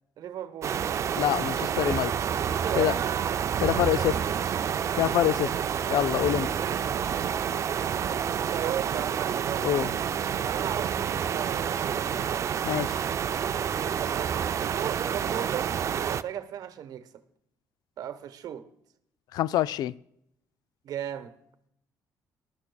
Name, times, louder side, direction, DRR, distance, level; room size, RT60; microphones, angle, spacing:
voice 1, 0.2-0.8 2.5-4.7 6.6-7.0 8.5-9.7 10.3-12.3 14.0-15.7 16.0-17.1 18.0-18.7 20.8-21.4, right 10 dB, 70° right, 1.0 m, -36 dB
sound 1, 0.6-16.2, right 8 dB, 45° right, 0.4 m, -29 dB
voice 2, 1.2-2.1 2.8-2.9 3.6-4.2 5.0-5.5 5.9-6.5 9.6-9.9 12.7-13.0 19.3-20.0, left 13 dB, 75° left, 0.3 m, -25 dB
19.5 x 12.5 x 2.3 m
cardioid pair, 90°, 7 cm